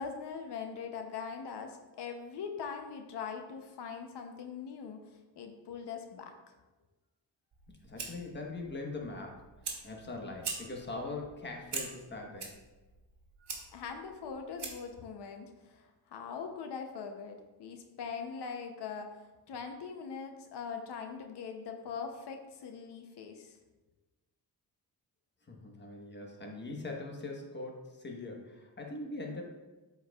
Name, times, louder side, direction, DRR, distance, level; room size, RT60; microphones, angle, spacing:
voice 1, 0.0-6.3 13.7-19.2 19.5-23.6, left 6 dB, 90° left, 5 dB, 0.8 m, -42 dB
Fire, 7.5-15.0, right 5 dB, 85° right, 1.4 m, -44 dB
voice 2, 7.7-9.5 9.8-12.5 25.4-29.4, left 2 dB, 25° left, 1 dB, 1.1 m, -42 dB
12.0 x 4.6 x 2.3 m, 1.2 s
wide cardioid pair, 150°, 40 cm